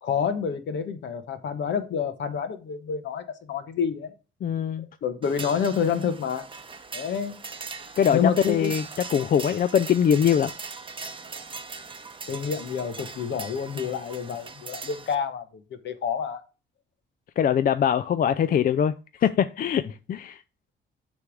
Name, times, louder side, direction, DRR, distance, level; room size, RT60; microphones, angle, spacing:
voice 1, 0.0-4.1 5.0-6.4 6.9-7.3 8.1-8.7 12.3-15.4 15.8-16.4, left 7 dB, 65° left, 1.2 m, -28 dB
voice 2, 4.4-4.9 8.0-8.8 9.1-10.5 17.4-19.0 19.2-20.4, left 8 dB, 45° left, 0.4 m, -22 dB
sound 1, 5.2-15.1, right 4 dB, 25° right, 0.8 m, -40 dB
8.3 x 3.4 x 6.2 m
cardioid pair, 90°, 20 cm